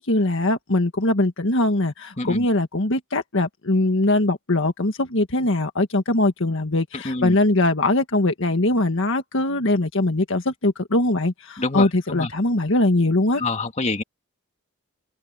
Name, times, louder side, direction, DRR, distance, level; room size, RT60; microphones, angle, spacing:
voice 1, 0.0-13.4, left 2 dB, 60° left, 1.7 m, -21 dB
voice 2, 6.9-7.4 11.6-12.3 13.4-14.0, left 3 dB, 35° left, 2.5 m, -27 dB
head